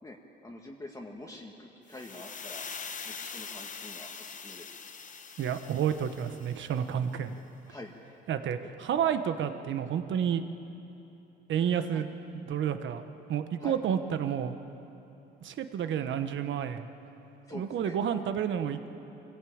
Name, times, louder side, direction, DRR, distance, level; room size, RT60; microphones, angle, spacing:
voice 1, 0.0-2.7 3.0-4.8 6.7-7.0 7.7-8.0 11.9-12.1 13.6-13.8 17.5-18.0, left 2 dB, 15° left, 0 dB, 1.7 m, -46 dB
sound 1, 1.9-6.9, left 6 dB, 40° left, 1.1 m, -43 dB
voice 2, 5.4-7.4 8.3-10.4 11.5-12.1 12.3-13.0 13.3-14.6 15.4-16.9 17.5-18.9, right 8 dB, 70° right, 9 dB, 1.3 m, -30 dB
24.0 x 16.0 x 8.7 m, 3.0 s
cardioid pair, 90°, 20 cm